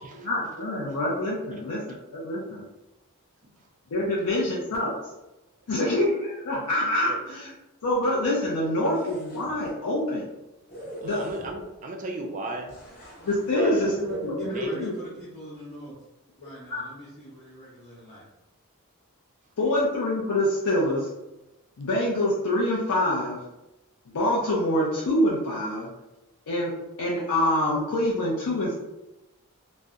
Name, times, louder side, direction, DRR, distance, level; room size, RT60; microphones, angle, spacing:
voice 1, 0.0-1.8 2.1-2.7 3.9-5.0 5.7-7.5 7.8-10.3 11.0-11.2 13.2-14.9 16.7-16.8 19.6-21.1 21.8-23.4 24.1-25.9 26.5-28.7, left 1 dB, 85° left, -5 dB, 0.5 m, -26 dB
sound 1, 8.8-9.7 10.7-11.8 12.7-13.6, equal, 45° left, 0.7 m, -43 dB
voice 2, 11.0-12.7 13.5-13.8 14.4-14.9, right 2 dB, 35° right, 2 dB, 0.3 m, -35 dB
voice 3, 13.8-16.0 16.4-18.2, equal, 10° left, -9 dB, 0.6 m, -39 dB
2.6 x 2.1 x 2.3 m, 0.99 s
head